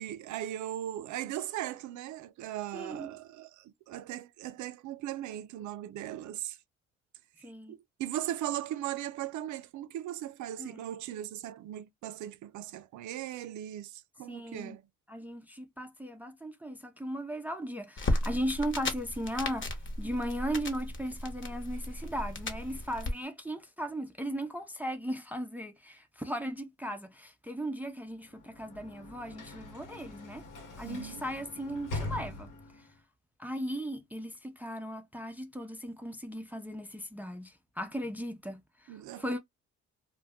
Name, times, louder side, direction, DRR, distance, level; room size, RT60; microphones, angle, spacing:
voice 1, 0.0-6.6 7.4-14.8 30.8-31.2 38.9-39.2, right 12 dB, 75° right, 0.5 m, -38 dB
voice 2, 2.7-3.1 7.4-7.7 10.6-10.8 14.3-14.8 15.1-30.5 30.8-32.5 32.8-32.9 33.4-39.4, equal, 5° right, 0.4 m, -37 dB
sound 1, 18.0-23.1, left 1 dB, 40° left, 1.0 m, -35 dB
Sliding door / Slam, 28.2-32.9, left 2 dB, 85° left, 1.0 m, -42 dB
2.2 x 2.2 x 3.4 m
cardioid pair, 90°, 30 cm